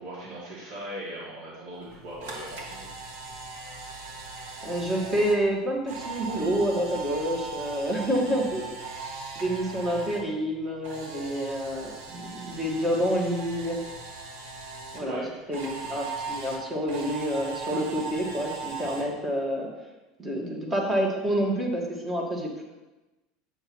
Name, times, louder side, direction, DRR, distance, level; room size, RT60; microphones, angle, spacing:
voice 1, 0.0-2.9 15.0-15.3, right 1 dB, 60° right, -7 dB, 2.4 m, -39 dB
Camera, 1.9-10.2 10.5-15.0 15.5-19.0, right 4 dB, 80° right, 2.1 m, -39 dB
voice 2, 4.6-8.7 9.3-13.8 14.9-15.2 15.5-19.7 20.2-22.6, equal, 20° right, 0 dB, 1.6 m, -28 dB
9.1 x 7.2 x 3.0 m, 1.1 s
supercardioid pair, 140°, 0 cm